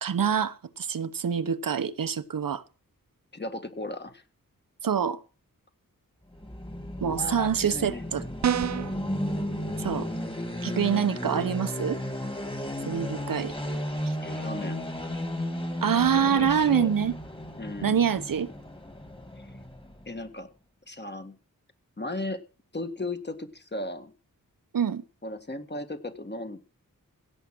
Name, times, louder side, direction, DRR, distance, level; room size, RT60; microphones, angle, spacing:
voice 1, 0.0-2.6 4.8-5.2 7.0-8.2 9.8-10.1 10.6-12.0 12.9-13.5 14.0-14.1 15.8-17.1 17.8-18.5 24.7-25.0, right 7 dB, 75° right, 0.9 m, -26 dB
voice 2, 3.3-4.2 7.0-8.0 14.2-14.8 16.2-16.9 17.6-18.0 19.4-19.6 20.1-20.5 20.9-21.4 22.0-22.4 22.7-24.1 25.2-26.6, left 2 dB, 30° left, 1.8 m, -36 dB
sound 1, 6.3-20.2, left 1 dB, 15° left, 2.3 m, -34 dB
sound 2, 8.4-9.0, right 9 dB, 55° right, 0.6 m, -26 dB
16.5 x 7.3 x 6.1 m
wide cardioid pair, 65°, 34 cm